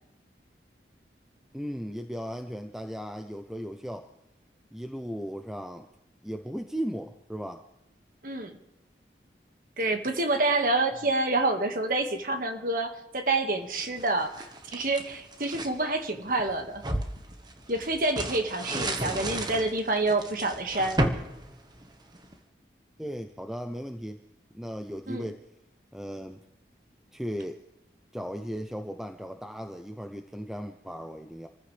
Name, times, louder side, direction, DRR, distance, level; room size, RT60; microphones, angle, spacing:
voice 1, 1.5-4.1 4.7-5.9 6.2-7.6 18.7-19.2 23.0-24.2 24.5-25.4 25.9-26.4 27.1-27.6 28.1-31.5, equal, 5° right, 6 dB, 0.6 m, -36 dB
voice 2, 8.2-8.6 9.8-16.8 17.7-21.0 25.1-25.3, right 2 dB, 50° right, 5 dB, 1.8 m, -28 dB
sound 1, 13.8-15.8 16.3-22.3, right 1 dB, 25° right, 1.3 m, -33 dB
28.0 x 15.0 x 3.4 m, 0.88 s
head